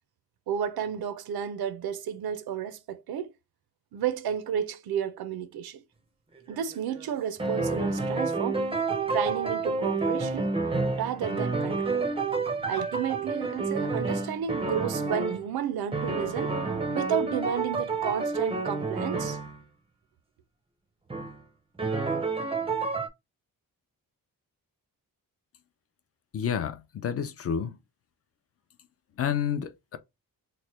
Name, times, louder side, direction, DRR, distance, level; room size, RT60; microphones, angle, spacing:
voice 1, 0.5-3.3 3.9-5.8 6.5-8.7 9.1-10.5 11.0-12.1 12.7-19.4, right 8 dB, 80° right, 0.6 m, -32 dB
sound 1, 6.4-7.1 7.4-15.4 15.9-19.6 21.1-21.3 21.8-23.1, right 3 dB, 15° right, 0.5 m, -29 dB
voice 2, 26.3-27.7 29.2-30.0, left 8 dB, 40° left, 0.4 m, -29 dB
3.1 x 2.1 x 4.1 m
wide cardioid pair, 170°, 37 cm